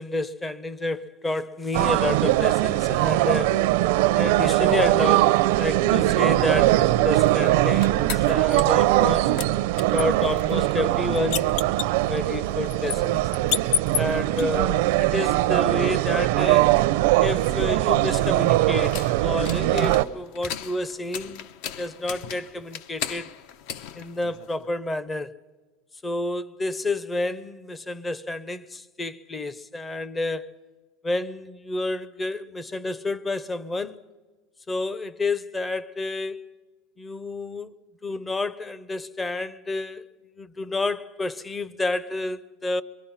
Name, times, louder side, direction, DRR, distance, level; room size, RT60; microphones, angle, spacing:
voice 1, 0.0-3.7 4.1-9.3 9.9-11.7 12.0-13.3 14.0-16.7 17.2-21.4 21.8-23.3 24.0-25.3 26.0-30.5 31.0-34.0 34.7-36.5 37.0-37.7 38.0-40.1 40.4-42.8, left 2 dB, 10° left, 0.6 m, -29 dB
sound 1, 1.7-20.0, right 16 dB, 70° right, 0.6 m, -21 dB
sound 2, 7.2-9.1 9.4-14.4 17.2-24.7, left 8 dB, 60° left, 0.8 m, -34 dB
26.0 x 23.0 x 5.7 m
supercardioid pair, 160°, 0 cm